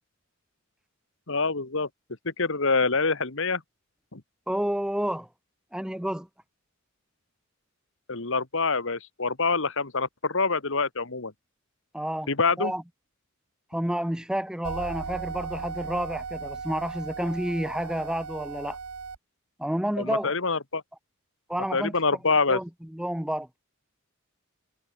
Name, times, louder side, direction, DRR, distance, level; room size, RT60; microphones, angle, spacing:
voice 1, 1.3-1.9 2.3-3.6 4.1-4.2 8.1-11.3 12.3-12.7 20.0-20.8 21.7-22.6, left 4 dB, 65° left, 2.0 m, -26 dB
voice 2, 4.5-5.3 5.7-6.3 11.9-12.3 12.6-12.8 13.7-18.8 19.6-20.3 21.5-21.9 22.5-23.5, equal, 5° right, 0.7 m, -30 dB
sound 1, 14.6-19.2, right 5 dB, 85° right, 1.1 m, -37 dB
head